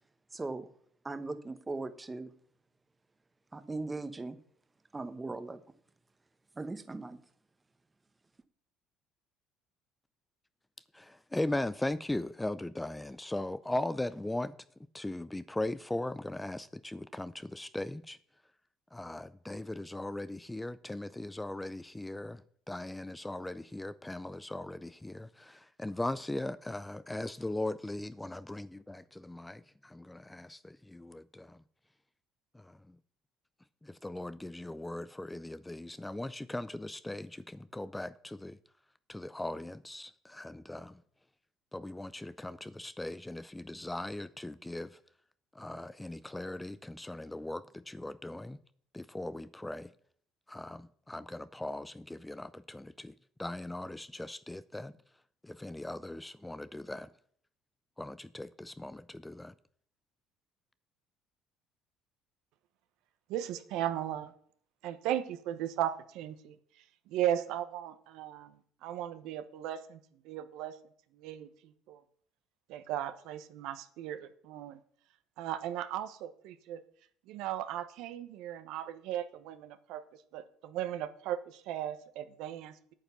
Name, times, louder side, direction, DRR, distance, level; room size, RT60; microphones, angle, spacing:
voice 1, 0.3-0.7 1.0-2.3 3.5-4.4 4.9-5.6 6.6-7.2, right 3 dB, 20° right, 1.0 m, -39 dB
voice 2, 10.9-14.5 14.9-18.2 18.9-22.4 22.7-31.6 32.5-33.0 33.8-38.6 39.1-41.0 41.7-45.0 45.5-48.6 48.9-49.9 50.5-54.9 55.4-57.1 58.0-59.5, left 1 dB, 10° left, 0.4 m, -39 dB
voice 3, 63.3-64.3 64.8-66.6 67.1-70.0 70.2-70.7 71.1-72.0 72.7-74.8 75.4-76.8 77.3-80.0 80.3-82.8, right 11 dB, 75° right, 0.9 m, -36 dB
8.9 x 8.0 x 6.9 m
supercardioid pair, 100°, 0 cm